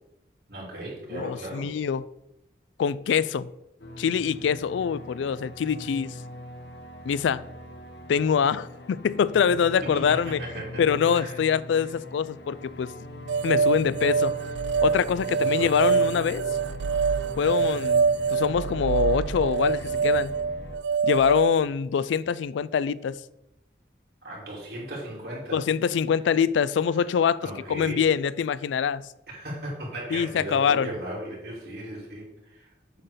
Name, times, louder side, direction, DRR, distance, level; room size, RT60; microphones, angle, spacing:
voice 1, 0.5-1.6 10.1-10.8 11.1-11.4 15.4-16.0 24.2-25.6 27.4-28.0 29.3-32.7, right 1 dB, 55° right, 3.1 m, -37 dB
voice 2, 1.1-2.0 2.8-3.5 4.0-6.1 7.1-7.4 8.1-10.4 10.8-12.9 13.4-14.3 14.8-16.4 17.4-20.3 21.0-23.2 25.5-29.1 30.1-30.9, left 7 dB, 80° left, 0.3 m, -24 dB
sound 1, 3.8-20.8, left 1 dB, 65° left, 0.9 m, -41 dB
sound 2, 13.3-21.5, right 5 dB, 70° right, 0.3 m, -25 dB
8.1 x 3.9 x 6.7 m
head